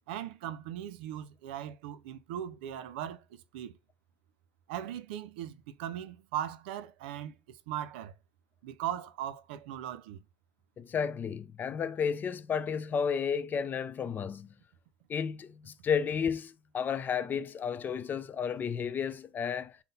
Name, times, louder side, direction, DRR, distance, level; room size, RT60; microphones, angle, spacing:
voice 1, 0.1-3.8 4.7-8.1 8.6-10.2, right 11 dB, 85° right, 0.4 m, -39 dB
voice 2, 10.8-14.5 15.1-19.8, left 7 dB, 35° left, 0.5 m, -32 dB
3.7 x 2.1 x 4.0 m
supercardioid pair, 85°, 5 cm